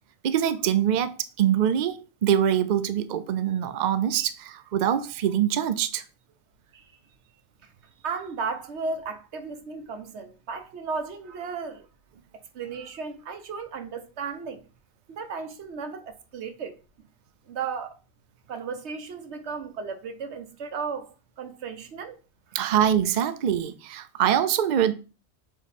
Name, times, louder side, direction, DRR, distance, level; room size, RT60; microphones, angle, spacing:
voice 1, 0.2-6.0 22.5-24.9, right 10 dB, 55° right, 0.6 m, -24 dB
voice 2, 8.0-11.9 12.5-14.6 15.1-16.8 17.5-18.0 18.5-22.2, right 5 dB, 85° right, 1.2 m, -35 dB
7.5 x 3.1 x 4.2 m
omnidirectional pair, 1.1 m